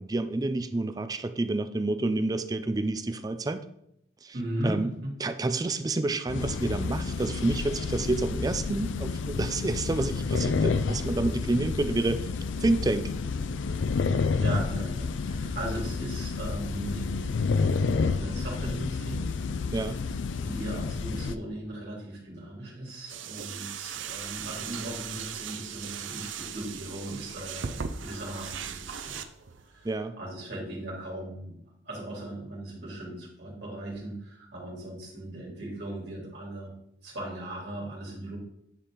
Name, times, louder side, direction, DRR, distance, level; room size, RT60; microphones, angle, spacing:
voice 1, 0.0-3.6 4.2-4.3 4.6-4.9 5.2-12.3 12.6-13.1 19.7-20.0 29.8-30.2, right 2 dB, 20° right, 10 dB, 0.4 m, -29 dB
voice 2, 4.3-5.1 14.4-17.3 17.8-19.3 19.5-19.8 20.4-29.3 29.6-29.9 30.2-31.6 31.8-36.7 37.0-38.4, right 1 dB, 60° right, -4 dB, 3.2 m, -38 dB
sound 1, 6.3-21.4, left 4 dB, 80° left, 0.4 m, -30 dB
sound 2, 23.1-29.9, right 7 dB, 90° right, 0.6 m, -38 dB
9.9 x 4.3 x 3.8 m, 0.77 s
head